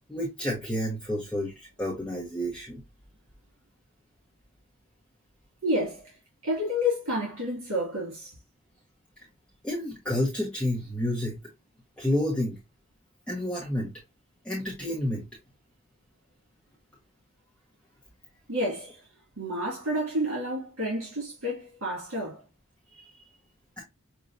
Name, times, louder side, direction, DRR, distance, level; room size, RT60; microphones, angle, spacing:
voice 1, 0.1-2.8 9.6-11.4 12.0-12.5 13.3-13.9 14.4-15.2 23.8-23.9, left 1 dB, 5° left, 1.1 m, -29 dB
voice 2, 5.6-6.1 6.4-8.3 18.5-19.0 19.4-22.4 22.9-23.1, left 1 dB, 65° right, 2.4 m, -30 dB
6.4 x 2.8 x 2.6 m
head